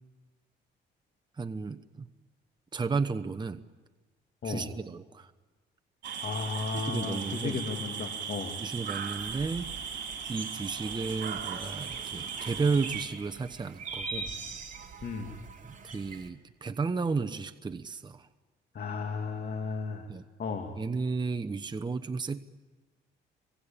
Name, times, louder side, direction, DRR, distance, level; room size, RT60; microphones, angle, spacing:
voice 1, 1.4-2.1 2.7-3.6 4.4-5.3 6.7-7.6 8.6-9.7 10.3-14.3 15.8-18.3 20.1-20.2 20.8-22.4, right 4 dB, 20° right, 7 dB, 1.0 m, -33 dB
sound 1, 6.0-13.1, right 6 dB, 65° right, 4.0 m, -38 dB
voice 2, 6.2-8.6 15.0-15.3 18.7-20.1 20.4-20.7, left 5 dB, 55° left, 4 dB, 2.7 m, -34 dB
sound 2, 9.2-16.3, right 4 dB, 40° right, 3.5 m, -43 dB
25.5 x 23.0 x 8.9 m, 1.3 s
cardioid pair, 90°, 20 cm